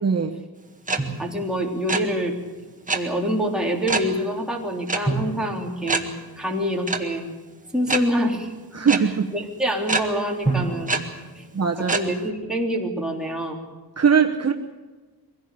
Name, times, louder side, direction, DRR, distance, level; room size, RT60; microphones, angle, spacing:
voice 1, 0.0-0.4 8.7-9.3 11.5-12.0 14.0-14.5, right 6 dB, 40° right, 2 dB, 1.2 m, -20 dB
voice 2, 0.9-2.3 2.9-6.1 6.4-7.3 7.7-8.5 9.0-11.0 11.3-11.4 11.8-13.6, equal, ahead, -1 dB, 3.3 m, -26 dB
sound 1, 0.9-1.0 1.3-2.0 2.9-3.0 3.9-4.1 4.9-5.0 5.3-5.4 5.9-6.0 6.9-7.0 7.9-8.0 8.9-9.0 9.9-10.0 10.9-11.0 11.9-12.0, right 3 dB, 20° right, 1.8 m, -23 dB
Drum, 1.0-2.1 5.0-6.9 10.4-12.4, right 3 dB, 20° left, 6.3 m, -31 dB
23.5 x 16.5 x 8.4 m, 1.3 s
wide cardioid pair, 140°, 37 cm